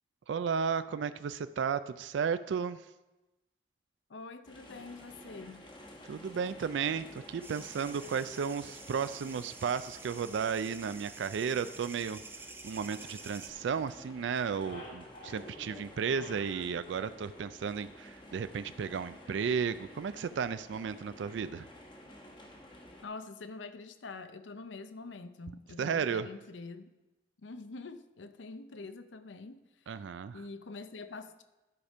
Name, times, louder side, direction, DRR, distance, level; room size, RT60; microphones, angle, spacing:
voice 1, 0.3-2.9 6.1-12.2 12.6-21.7 25.8-26.3 29.9-30.4, right 6 dB, 85° right, 13 dB, 0.4 m, -34 dB
voice 2, 4.1-5.7 23.0-26.9 27.4-29.6 29.9-30.0 30.3-31.4, left 3 dB, 90° left, 11 dB, 0.6 m, -45 dB
sound 1, 4.5-23.0, left 1 dB, 25° left, 1.1 m, -52 dB
sound 2, 7.4-13.5, right 4 dB, 10° right, 0.6 m, -49 dB
sound 3, 12.8-14.0 14.3-18.0, left 1 dB, 55° left, 2.5 m, -51 dB
12.0 x 5.1 x 5.4 m, 1.0 s
head